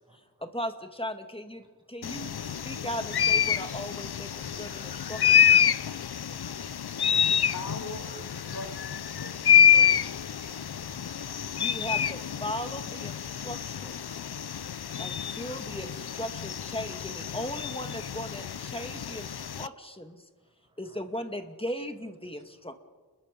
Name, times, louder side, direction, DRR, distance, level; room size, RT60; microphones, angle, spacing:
voice 1, 0.4-5.4 11.6-13.9 15.0-20.2 20.8-22.8, equal, 15° left, 6 dB, 2.2 m, -37 dB
sound 1, 2.0-19.7, left 8 dB, 85° left, 0.6 m, -27 dB
voice 2, 2.9-3.2 6.0-6.7 7.3-7.5 10.7-11.0 11.4-11.8 13.6-13.8 14.5-15.5 20.6-21.0 22.3-22.4, right 1 dB, 10° right, 0 dB, 7.5 m, -59 dB
voice 3, 7.5-10.8, left 2 dB, 55° left, 5 dB, 4.6 m, -43 dB
30.0 x 21.0 x 5.3 m, 1.4 s
wide cardioid pair, 60°, 38 cm